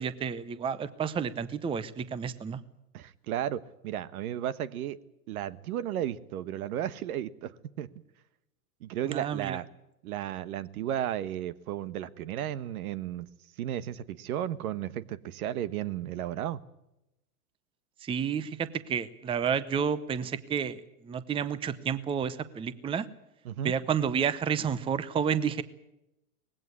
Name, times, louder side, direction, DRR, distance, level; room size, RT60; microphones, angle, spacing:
voice 1, 0.0-2.6 9.0-9.6 18.0-23.1 23.6-25.6, right 7 dB, 10° right, 16 dB, 0.7 m, -30 dB
voice 2, 2.9-5.0 5.3-7.9 8.8-9.7 10.0-13.3 13.6-16.6 23.4-23.7, right 11 dB, 65° right, 17 dB, 1.3 m, -34 dB
20.0 x 16.5 x 9.6 m, 0.88 s
hypercardioid pair, 125°, 46 cm